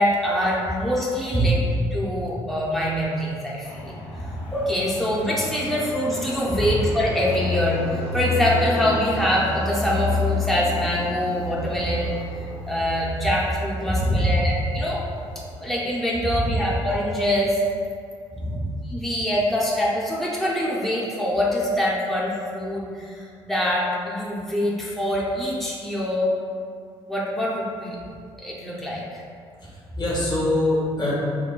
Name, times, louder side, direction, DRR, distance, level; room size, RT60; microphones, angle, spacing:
voice 1, 0.0-1.6 1.9-4.0 4.5-15.0 15.6-17.6 18.9-26.3 27.1-28.0 28.4-29.2, left 1 dB, ahead, -6 dB, 0.7 m, -24 dB
Fixed-wing aircraft airplane, 3.6-17.2, left 2 dB, 50° left, 0.7 m, -31 dB
voice 2, 13.9-14.5 16.2-16.5 18.3-18.6 29.6-31.1, equal, 35° left, -6 dB, 1.2 m, -24 dB
4.3 x 2.1 x 2.3 m, 2.2 s
hypercardioid pair, 50°, 13 cm